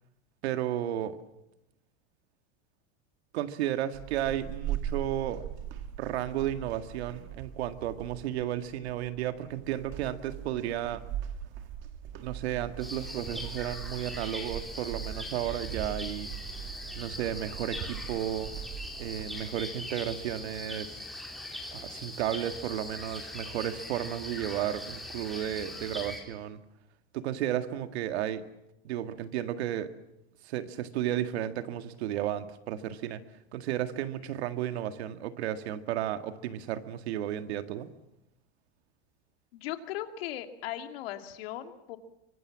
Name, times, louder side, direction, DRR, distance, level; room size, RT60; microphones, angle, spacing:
voice 1, 0.4-1.2 3.3-5.4 6.0-11.0 12.1-16.3 17.0-18.5 19.0-21.1 21.7-26.6 27.1-28.5 28.8-29.9 30.4-33.2 33.5-37.9, right 11 dB, 85° right, 9 dB, 2.0 m, -33 dB
sound 1, 3.9-19.7, right 10 dB, 40° right, 1.8 m, -40 dB
sound 2, 12.8-26.2, left 1 dB, ahead, 3.7 m, -41 dB
voice 2, 39.5-42.0, left 12 dB, 70° left, 7 dB, 2.5 m, -38 dB
25.0 x 24.5 x 7.4 m, 0.87 s
supercardioid pair, 175°, 32 cm